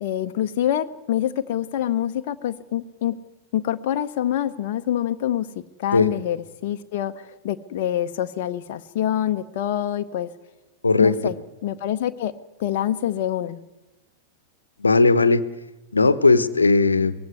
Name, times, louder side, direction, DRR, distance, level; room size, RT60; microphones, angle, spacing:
voice 1, 0.0-3.2 3.5-10.3 11.0-11.3 11.6-12.3 12.6-13.6, left 11 dB, 50° left, 8 dB, 0.7 m, -26 dB
voice 2, 10.8-11.1 14.8-15.4 15.9-17.1, left 3 dB, 80° left, 16 dB, 0.9 m, -17 dB
20.5 x 15.5 x 9.6 m, 1.1 s
figure-of-eight pair, 95°, 0 cm